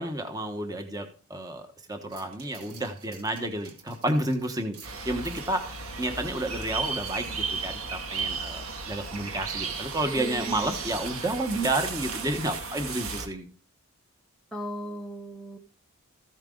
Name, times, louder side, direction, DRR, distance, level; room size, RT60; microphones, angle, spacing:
voice 1, 0.0-4.8 5.0-13.5, right 1 dB, 15° right, 5 dB, 1.2 m, -31 dB
sound 1, 2.1-9.0 9.4-9.5, right 5 dB, 85° right, 2.7 m, -53 dB
sound 2, 4.8-13.3, right 4 dB, 70° right, 2.0 m, -34 dB
voice 2, 10.2-10.7 14.5-15.6, equal, ahead, 1 dB, 0.7 m, -37 dB
14.5 x 9.0 x 3.8 m, 0.39 s
head